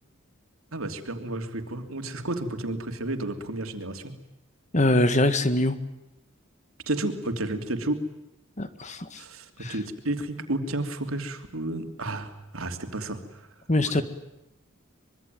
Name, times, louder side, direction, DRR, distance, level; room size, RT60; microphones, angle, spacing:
voice 1, 0.7-4.1 6.9-8.0 9.2-13.4 13.8-14.0, right 2 dB, 85° right, 6 dB, 3.1 m, -32 dB
voice 2, 4.7-5.8 8.6-9.2 9.6-9.7 13.7-14.0, left 1 dB, 35° left, 11 dB, 1.7 m, -23 dB
25.0 x 23.5 x 9.3 m, 0.92 s
head